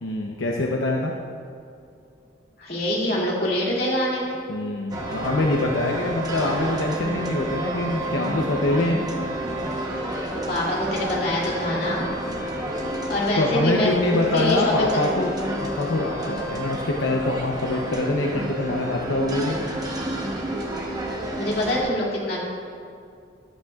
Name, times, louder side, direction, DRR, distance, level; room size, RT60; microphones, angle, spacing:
voice 1, 0.0-1.1 4.5-9.0 13.4-15.3 15.6-19.6, left 2 dB, 85° left, 0 dB, 0.8 m, -24 dB
voice 2, 2.6-4.4 10.3-12.1 13.1-13.9 14.3-14.9 21.4-22.4, left 1 dB, 50° left, -5 dB, 2.5 m, -25 dB
sound 1, 4.9-21.8, right 1 dB, 20° right, 1.0 m, -30 dB
14.0 x 11.5 x 2.4 m, 2.4 s
head